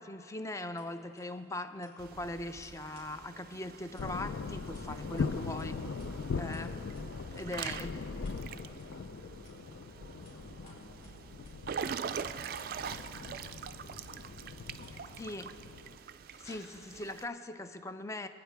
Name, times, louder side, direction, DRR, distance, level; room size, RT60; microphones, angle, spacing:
voice 1, 0.0-5.8 6.3-7.0 7.3-7.9 15.2-15.5 16.4-18.3, left 2 dB, 15° left, 10 dB, 0.4 m, -40 dB
Scissors, 0.6-17.1, left 2 dB, 55° left, 3.9 m, -65 dB
Water / Splash splatter / Drip, 2.0-17.2, right 7 dB, 50° right, 0.3 m, -44 dB
sound 1, 4.0-16.0, left 4 dB, 80° left, 0.4 m, -40 dB
voice 2, 7.2-11.1 12.0-15.3, equal, 40° left, -4 dB, 2.6 m, -59 dB
24.5 x 9.4 x 3.4 m, 2.6 s
head